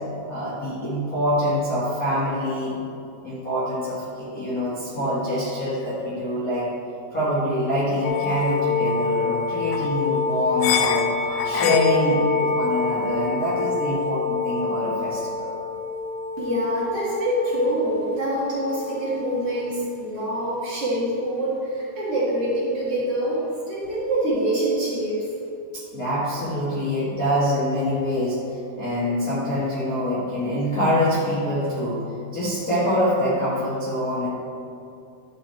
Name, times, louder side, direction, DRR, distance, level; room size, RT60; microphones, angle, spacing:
voice 1, 0.2-2.8 3.2-6.7 7.1-11.1 11.4-15.6 25.7-32.0 32.3-34.3, left 1 dB, 35° left, -10 dB, 1.4 m, -25 dB
sound 1, 8.0-19.8, left 4 dB, 90° left, 2.6 m, -26 dB
voice 2, 16.4-25.3, right 1 dB, 45° right, -9 dB, 2.6 m, -25 dB
12.5 x 5.3 x 4.4 m, 2.6 s
omnidirectional pair, 4.5 m